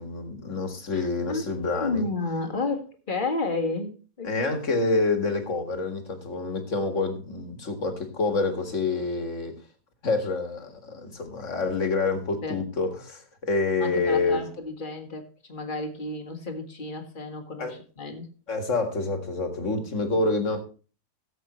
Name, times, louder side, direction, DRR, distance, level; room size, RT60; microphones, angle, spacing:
voice 1, 0.0-2.1 4.2-9.5 10.0-14.4 17.6-17.8 18.5-20.6, left 3 dB, 50° left, 2.2 m, -27 dB
voice 2, 0.9-4.3 12.4-12.6 13.8-18.3, left 3 dB, 30° left, 1.8 m, -32 dB
17.0 x 7.9 x 3.1 m
omnidirectional pair, 1.7 m